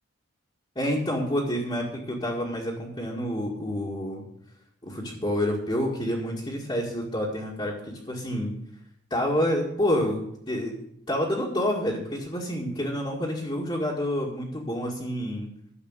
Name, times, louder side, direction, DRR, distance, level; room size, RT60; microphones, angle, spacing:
voice 1, 0.8-4.2 4.8-8.5 9.1-10.8 11.1-15.5, equal, 25° left, -4 dB, 2.1 m, -28 dB
11.5 x 7.4 x 8.1 m, 0.73 s
head